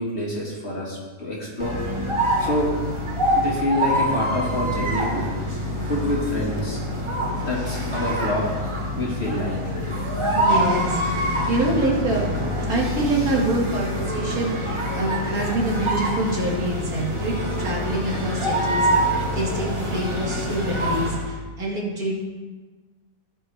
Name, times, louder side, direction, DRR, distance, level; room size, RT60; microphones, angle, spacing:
voice 1, 0.0-1.8 2.4-2.7 3.3-5.3 5.8-6.8 7.5-8.5 9.0-9.8, left 1 dB, 40° left, -4 dB, 2.1 m, -27 dB
sound 1, 1.6-21.3, equal, 20° right, 1.1 m, -25 dB
voice 2, 10.3-11.2 11.5-12.3 12.7-22.2, right 1 dB, 65° right, -3 dB, 2.3 m, -26 dB
15.0 x 5.4 x 3.4 m, 1.3 s
omnidirectional pair, 1.7 m